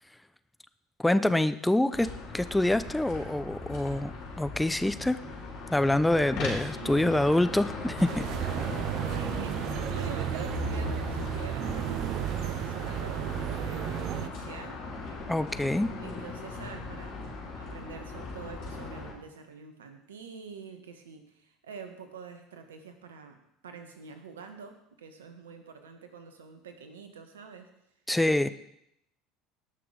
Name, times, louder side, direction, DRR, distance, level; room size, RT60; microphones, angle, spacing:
voice 1, 1.0-5.2 5.7-8.1 15.3-15.9 28.1-28.5, left 1 dB, 5° left, 13 dB, 0.6 m, -26 dB
sound 1, 1.9-19.1, left 3 dB, 55° left, 4.2 m, -39 dB
voice 2, 6.8-7.3 7.8-7.9 8.1-8.2 9.0-14.8 16.0-17.1 17.6-27.7, right 5 dB, 80° right, 7 dB, 1.5 m, -46 dB
sound 2, 8.0-14.3, right 13 dB, 50° right, 0.5 m, -33 dB
17.5 x 6.1 x 4.8 m, 0.78 s
hypercardioid pair, 70°, 0 cm